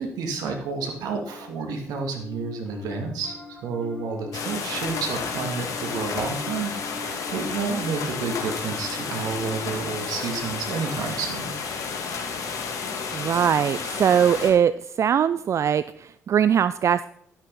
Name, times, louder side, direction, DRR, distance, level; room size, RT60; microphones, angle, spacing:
voice 1, 0.0-11.5, right 5 dB, 65° right, 2 dB, 2.4 m, -30 dB
Piano, 1.1-12.6, left 5 dB, 15° left, 6.3 m, -43 dB
sound 1, 4.3-14.5, left 5 dB, 55° left, 2.9 m, -31 dB
voice 2, 13.1-17.1, right 8 dB, 45° right, 15 dB, 0.4 m, -21 dB
11.5 x 11.5 x 4.1 m, 0.68 s
hypercardioid pair, 45°, 7 cm